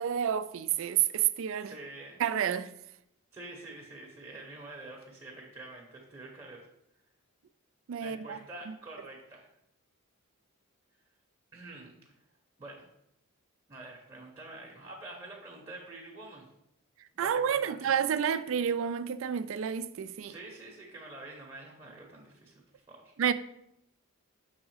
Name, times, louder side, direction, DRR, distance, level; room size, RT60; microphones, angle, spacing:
voice 1, 0.0-1.7 2.2-2.7 7.9-8.4 17.2-20.3 23.2-23.3, right 8 dB, 60° right, 0.3 m, -29 dB
voice 2, 1.6-2.2 3.3-6.7 8.0-9.5 11.5-12.0 12.6-12.8 13.7-16.5 17.1-17.9 20.2-23.1, right 2 dB, 20° right, 0.9 m, -47 dB
6.2 x 3.6 x 4.9 m
head